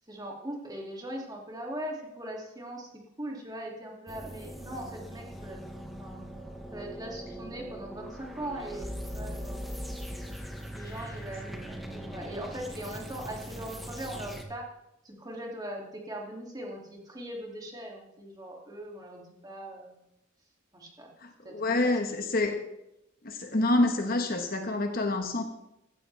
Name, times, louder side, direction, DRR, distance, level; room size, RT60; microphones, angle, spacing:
voice 1, 0.1-2.9 3.2-5.6 6.0-6.2 6.7-9.6 10.7-14.7 15.0-20.0 20.7-21.1 21.4-22.1, right 1 dB, 20° right, -1 dB, 2.6 m, -40 dB
sound 1, 4.1-14.4, equal, ahead, 1.4 m, -40 dB
voice 2, 21.2-22.6 23.2-25.4, left 2 dB, 45° left, 5 dB, 1.3 m, -27 dB
16.5 x 14.0 x 3.5 m, 0.86 s
head